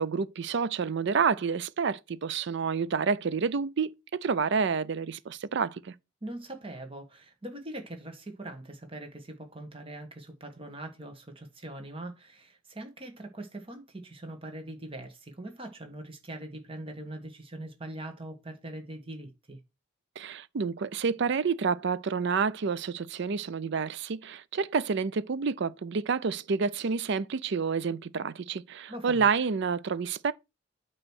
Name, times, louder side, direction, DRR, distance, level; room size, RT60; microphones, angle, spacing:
voice 1, 0.0-5.9 20.2-30.3, right 5 dB, 60° right, 0.5 m, -29 dB
voice 2, 6.2-19.6 28.9-29.3, right 1 dB, 25° right, 1.5 m, -42 dB
8.9 x 3.1 x 6.3 m
head